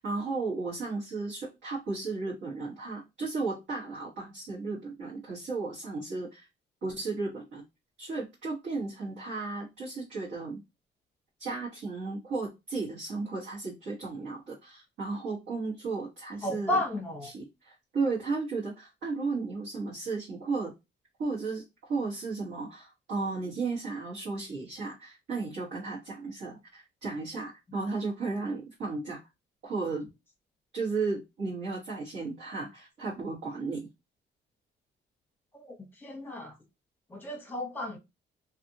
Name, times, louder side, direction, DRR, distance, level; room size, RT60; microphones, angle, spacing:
voice 1, 0.0-6.4 6.8-7.6 8.0-10.6 11.4-16.8 17.2-20.7 21.2-21.6 21.9-29.2 29.6-30.1 30.7-33.9, right 3 dB, 65° right, 1.4 m, -34 dB
voice 2, 16.4-17.3 35.5-35.7 36.0-36.5 37.1-38.0, left 1 dB, 10° left, 1.0 m, -33 dB
2.6 x 2.5 x 2.7 m
cardioid pair, 90°, 20 cm